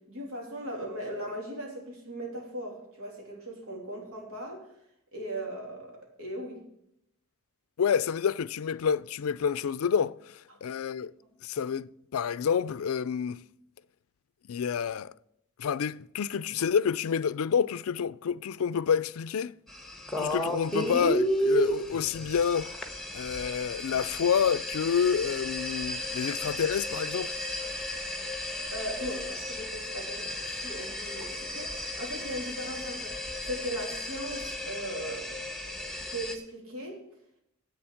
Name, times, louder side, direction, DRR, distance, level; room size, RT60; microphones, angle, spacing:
voice 1, 0.1-4.7 5.1-6.6 10.5-10.6 28.7-35.4 36.0-37.0, right 1 dB, 90° right, 3.1 m, -38 dB
voice 2, 7.8-11.1 11.4-13.4 14.5-15.1 15.6-19.5 20.2-22.7 23.1-27.3, left 7 dB, 85° left, 0.4 m, -28 dB
sound 1, 19.7-36.4, equal, ahead, 1.1 m, -34 dB
8.0 x 7.0 x 8.5 m
head